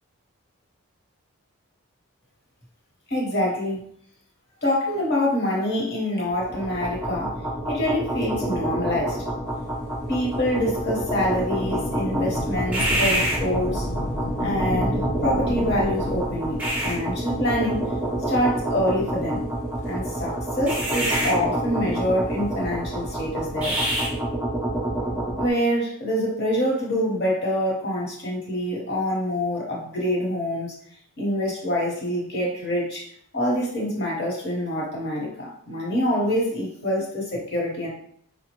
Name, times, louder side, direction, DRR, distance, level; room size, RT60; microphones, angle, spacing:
voice 1, 3.1-3.8 4.6-7.3 7.7-9.2 10.1-13.9 14.4-17.8 18.3-19.4 19.9-23.8 25.4-30.7 31.2-33.1 33.3-37.9, left 1 dB, 50° left, -3 dB, 1.1 m, -25 dB
Machinery BL, 6.3-25.5, right 1 dB, 5° right, 0.5 m, -27 dB
Thunder / Rain, 9.9-18.9 19.6-19.7 20.6-21.9 23.4-24.2, left 1 dB, 30° left, 0.7 m, -34 dB
5.0 x 2.1 x 2.9 m, 0.65 s
head